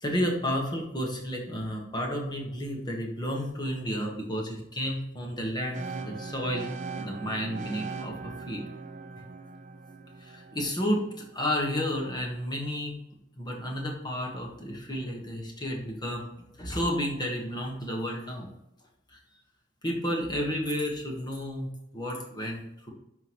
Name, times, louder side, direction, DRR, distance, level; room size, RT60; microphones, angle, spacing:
voice 1, 0.0-6.7 7.0-8.6 10.2-12.9 13.4-16.2 16.6-18.5 19.1-19.2 19.8-22.9, equal, 25° left, -1 dB, 1.5 m, -31 dB
sound 1, 5.7-11.7, right 4 dB, 40° right, 0.5 m, -40 dB
11.0 x 3.9 x 3.1 m, 0.85 s
head